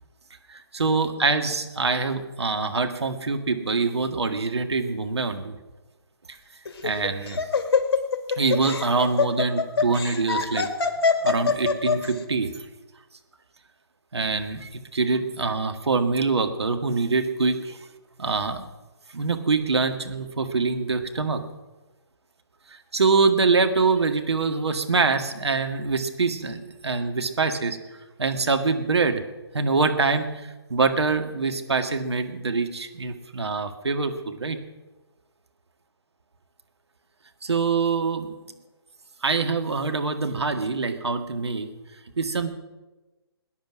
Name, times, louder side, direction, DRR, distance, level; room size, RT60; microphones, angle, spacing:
voice 1, 0.5-5.6 6.8-7.4 8.4-10.7 11.2-12.5 14.1-17.8 18.2-18.6 19.1-21.4 22.9-27.8 28.2-29.2 29.5-30.3 30.7-34.6 37.4-38.3 39.2-41.7 42.2-42.5, right 4 dB, 80° right, 7 dB, 1.8 m, -24 dB
Laughter, 6.7-12.1, left 5 dB, 60° left, 2.2 m, -23 dB
19.5 x 10.0 x 6.3 m, 1.1 s
figure-of-eight pair, 145°, 14 cm